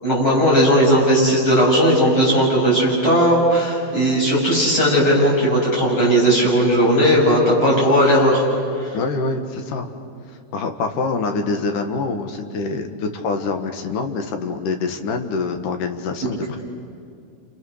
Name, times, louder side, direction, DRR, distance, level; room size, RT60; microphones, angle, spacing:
voice 1, 0.0-8.4 8.8-8.9 16.2-16.3, equal, 35° left, -4 dB, 7.8 m, -16 dB
voice 2, 8.9-9.9 10.5-16.6, left 4 dB, 65° left, 5 dB, 2.8 m, -25 dB
30.0 x 28.0 x 6.5 m, 2.4 s
omnidirectional pair, 4.2 m